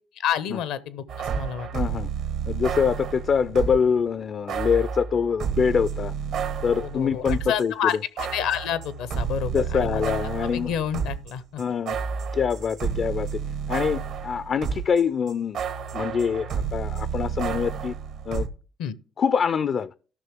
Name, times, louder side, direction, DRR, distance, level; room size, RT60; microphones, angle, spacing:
voice 1, 0.2-1.7 6.8-10.1 10.5-11.6 18.8-19.0, left 9 dB, 80° left, 0.7 m, -29 dB
sound 1, 1.1-3.9 4.5-7.6 7.9-15.0 15.3-18.5, right 6 dB, 70° right, 1.2 m, -30 dB
voice 2, 1.7-2.1 2.5-6.1 6.6-7.7 9.5-10.7 11.6-12.0 12.3-13.4 13.7-15.6 15.9-17.9 18.3-18.5 19.2-19.9, left 6 dB, 55° left, 0.4 m, -24 dB
13.0 x 5.8 x 3.5 m
hypercardioid pair, 55°, 0 cm